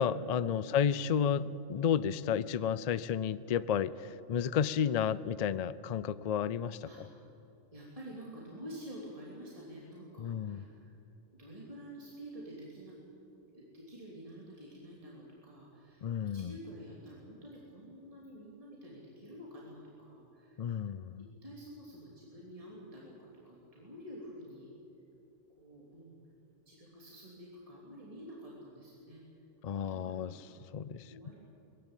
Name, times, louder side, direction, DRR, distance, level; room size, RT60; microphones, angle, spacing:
voice 1, 0.0-7.1 10.2-10.6 16.0-16.5 20.6-21.2 29.6-30.5 30.7-31.3, left 8 dB, 60° left, 17 dB, 0.4 m, -32 dB
voice 2, 7.7-10.9 11.3-12.9 13.5-16.1 16.3-20.7 21.4-24.7 25.6-26.2 26.7-29.2 29.9-30.4 31.1-31.4, equal, 25° right, -4 dB, 3.0 m, -49 dB
20.5 x 15.5 x 9.0 m, 2.8 s
omnidirectional pair, 1.3 m